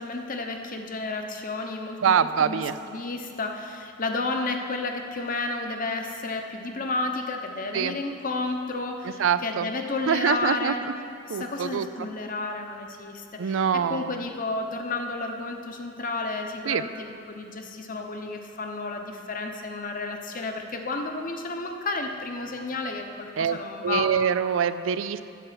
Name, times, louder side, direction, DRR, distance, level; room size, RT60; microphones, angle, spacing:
voice 1, 0.0-10.9 11.3-24.1, left 3 dB, 45° left, 4 dB, 1.0 m, -32 dB
voice 2, 2.0-2.7 7.7-7.9 9.2-9.7 10.1-10.7 11.3-12.1 13.4-14.1 16.7-16.8 23.4-23.6 23.8-25.2, right 7 dB, 75° right, 13 dB, 0.4 m, -24 dB
9.2 x 6.9 x 7.5 m, 2.5 s
head